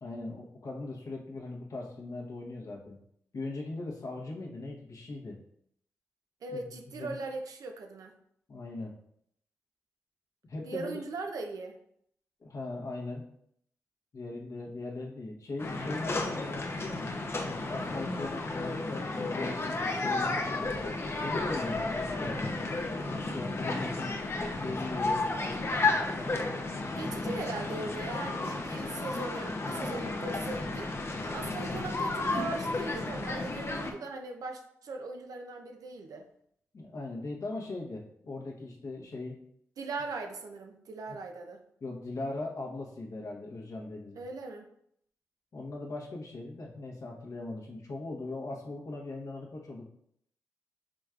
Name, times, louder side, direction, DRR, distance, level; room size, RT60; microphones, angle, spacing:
voice 1, 0.0-3.0 3.3-5.4 6.5-6.6 7.0-7.2 8.5-8.9 10.4-11.0 12.4-13.2 14.1-17.1 17.5-20.7 21.2-22.4 23.2-24.1 24.6-26.3 36.7-39.4 41.1-41.2 41.8-44.2 45.5-49.9, left 2 dB, 65° left, -1 dB, 1.1 m, -39 dB
voice 2, 6.4-8.2 10.6-11.8 21.5-22.0 23.7-23.8 27.0-30.9 31.2-36.3 39.8-41.6 44.1-44.7, right 3 dB, 80° right, 4 dB, 0.6 m, -39 dB
sound 1, 15.6-33.9, left 3 dB, 45° left, 0.7 m, -33 dB
5.1 x 3.2 x 2.4 m, 0.70 s
supercardioid pair, 45°, 6 cm